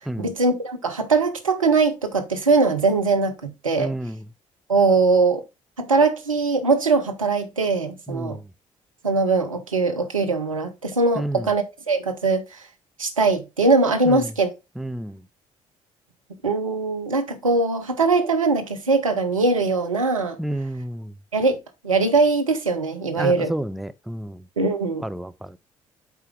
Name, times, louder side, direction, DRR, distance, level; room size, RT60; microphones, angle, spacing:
voice 1, 0.2-3.9 4.7-5.4 5.8-8.4 9.0-12.4 13.0-14.5 16.4-20.4 21.3-21.6 21.8-23.5 24.6-25.0, right 3 dB, 85° right, 0.7 m, -21 dB
voice 2, 3.8-4.3 8.1-8.5 11.1-11.5 14.1-14.3 14.8-15.3 20.4-21.2 23.1-24.5 25.0-25.6, right 1 dB, ahead, 0.4 m, -30 dB
8.2 x 4.7 x 3.4 m
figure-of-eight pair, 45°, 17 cm